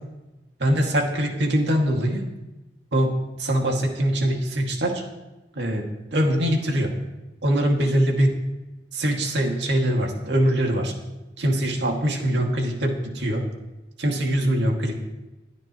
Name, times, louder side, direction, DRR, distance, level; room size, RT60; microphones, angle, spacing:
voice 1, 0.6-2.2 2.9-3.1 3.4-5.0 5.6-6.9 7.4-8.3 8.9-10.9 11.4-13.4 14.0-15.0, right 1 dB, 90° right, 1 dB, 2.2 m, -23 dB
22.0 x 9.5 x 3.1 m, 1.0 s
head